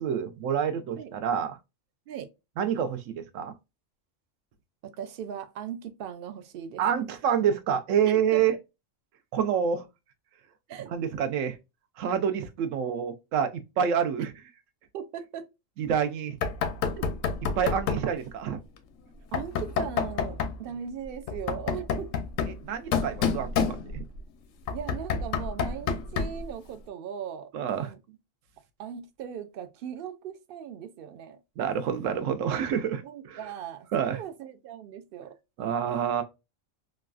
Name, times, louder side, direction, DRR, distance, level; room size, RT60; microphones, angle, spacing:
voice 1, 0.0-1.6 2.6-3.5 6.8-8.5 9.3-9.9 10.9-11.6 12.0-14.3 15.8-16.4 17.6-18.6 22.6-24.0 27.5-27.9 31.6-33.5 33.9-34.2 35.6-36.2, right 8 dB, 80° right, 0.9 m, -27 dB
voice 2, 4.8-6.8 8.0-8.4 10.7-10.9 14.9-15.5 19.3-22.1 24.7-27.5 27.8-28.0 28.8-31.4 33.0-35.4, right 8 dB, 65° right, 0.6 m, -38 dB
Knock, 16.4-18.1 19.3-20.6 21.3-24.2 24.7-26.5, left 6 dB, 80° left, 1.0 m, -29 dB
3.1 x 2.3 x 2.2 m
omnidirectional pair, 1.3 m